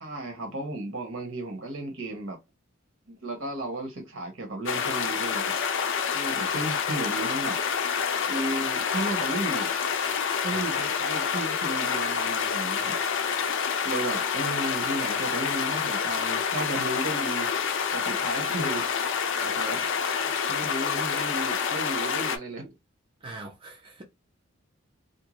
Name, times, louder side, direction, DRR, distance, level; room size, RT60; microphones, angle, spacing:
voice 1, 0.0-2.4 3.2-5.5 6.1-7.6 8.3-9.7 10.4-13.0 13.8-17.5 17.9-18.8 19.4-19.9 20.5-22.7, right 2 dB, 65° right, 1.0 m, -34 dB
sound 1, 4.7-22.4, left 6 dB, 60° left, 0.4 m, -28 dB
voice 2, 23.2-24.0, right 2 dB, 25° right, 0.5 m, -43 dB
2.6 x 2.1 x 3.0 m
head